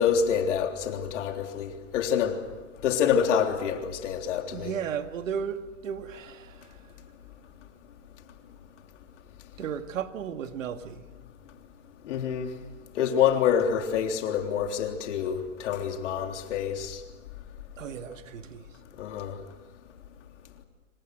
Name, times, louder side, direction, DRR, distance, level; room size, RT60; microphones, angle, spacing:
voice 1, 0.0-2.4 2.8-4.7 12.1-12.5 13.0-17.0 19.0-19.3, left 8 dB, 65° left, 3.5 m, -26 dB
voice 2, 4.5-6.8 9.6-11.1 17.8-18.7, right 8 dB, 80° right, 2.1 m, -35 dB
27.5 x 26.0 x 6.5 m
hypercardioid pair, 125°, 38 cm